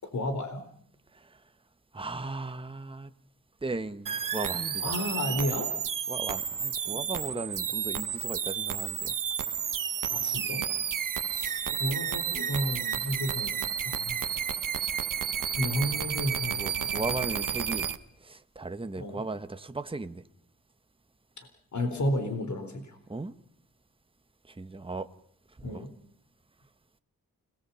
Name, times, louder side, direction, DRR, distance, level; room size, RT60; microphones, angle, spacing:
voice 1, 0.0-0.6 4.8-5.7 6.8-7.0 10.1-10.6 11.3-13.5 13.8-14.2 15.5-17.0 19.0-19.2 21.7-23.0 25.6-25.9, left 1 dB, 55° left, 4.1 m, -32 dB
voice 2, 1.9-3.1 3.6-5.0 6.1-9.2 16.5-17.9 18.2-20.2 23.1-23.3 24.5-25.1 25.6-25.9, right 3 dB, 15° right, 1.2 m, -37 dB
sound 1, 4.1-18.0, right 8 dB, 65° right, 1.3 m, -31 dB
29.5 x 20.0 x 5.7 m
cardioid pair, 80°, 34 cm